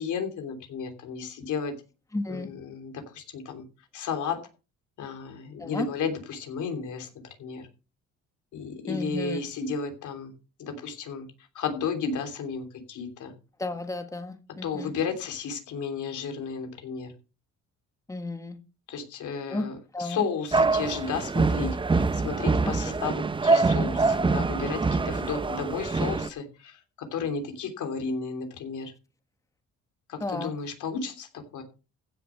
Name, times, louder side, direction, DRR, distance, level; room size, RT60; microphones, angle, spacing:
voice 1, 0.0-1.8 2.3-3.6 3.9-4.4 5.0-7.7 8.5-10.3 10.6-11.3 11.5-13.3 14.6-17.1 18.9-28.9 30.1-31.6, left 5 dB, 80° left, 5 dB, 3.2 m, -33 dB
voice 2, 2.1-2.5 5.6-5.9 8.9-9.4 13.6-14.9 18.1-18.6 19.5-19.7 19.9-20.2 22.7-22.9 30.2-30.5, left 2 dB, 10° left, 7 dB, 1.6 m, -33 dB
sound 1, 20.5-26.3, right 3 dB, 15° right, 0.6 m, -25 dB
15.5 x 6.9 x 4.6 m, 0.33 s
cardioid pair, 90°, 30 cm